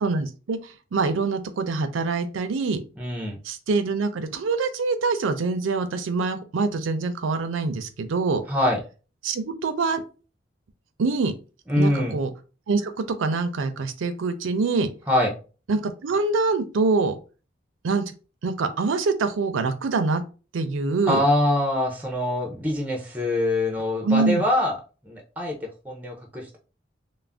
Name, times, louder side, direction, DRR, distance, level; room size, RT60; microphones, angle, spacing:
voice 1, 0.0-0.6 0.9-2.8 3.4-8.4 9.2-10.0 11.0-11.3 11.8-12.3 12.7-14.9 15.7-17.2 17.8-18.0 18.4-20.2 20.5-21.2 24.0-24.4, right 3 dB, 80° right, 9 dB, 0.4 m, -24 dB
voice 2, 3.0-3.4 8.5-8.8 11.7-12.2 15.1-15.3 21.1-24.7 25.0-25.5 25.8-26.6, left 1 dB, 10° right, 1 dB, 0.5 m, -24 dB
2.4 x 2.0 x 3.3 m, 0.34 s
head